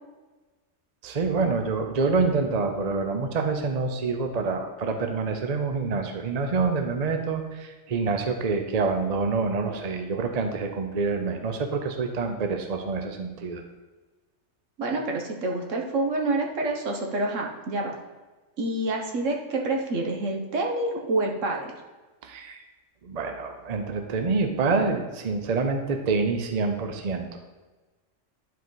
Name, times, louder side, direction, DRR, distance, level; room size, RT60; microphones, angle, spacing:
voice 1, 1.0-13.6 22.2-22.6 23.0-27.5, right 4 dB, 40° right, 5 dB, 0.7 m, -27 dB
voice 2, 14.8-17.9 18.6-21.7, right 2 dB, 70° right, 1 dB, 1.5 m, -27 dB
10.5 x 4.7 x 4.0 m, 1.2 s
omnidirectional pair, 1.3 m